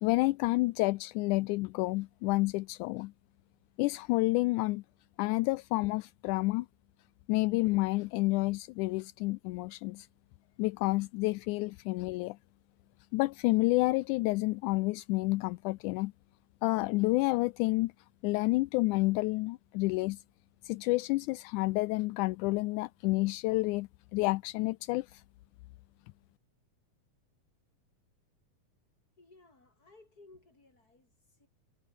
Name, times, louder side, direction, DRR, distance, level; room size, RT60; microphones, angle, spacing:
voice 1, 0.0-3.1 3.8-4.8 5.2-6.7 7.3-10.1 10.6-12.4 13.1-16.1 16.6-17.9 18.2-20.2 20.6-25.2, left 21 dB, 80° left, 2.0 m, -29 dB
voice 2, 29.2-31.5, left 3 dB, 25° left, 6.1 m, -59 dB
omnidirectional pair, 3.6 m